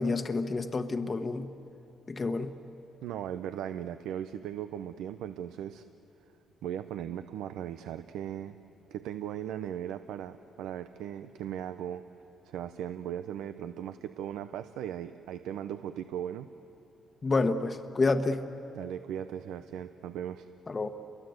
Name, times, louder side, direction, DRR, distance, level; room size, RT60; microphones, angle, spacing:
voice 1, 0.0-1.5 2.1-2.5 17.2-18.4 20.7-20.9, left 3 dB, 30° left, 7 dB, 1.2 m, -28 dB
voice 2, 3.0-5.8 6.6-8.6 8.9-12.1 12.4-16.5 18.7-20.5, right 10 dB, 90° right, 10 dB, 0.6 m, -38 dB
30.0 x 23.5 x 8.0 m, 2.9 s
cardioid pair, 90°, 0 cm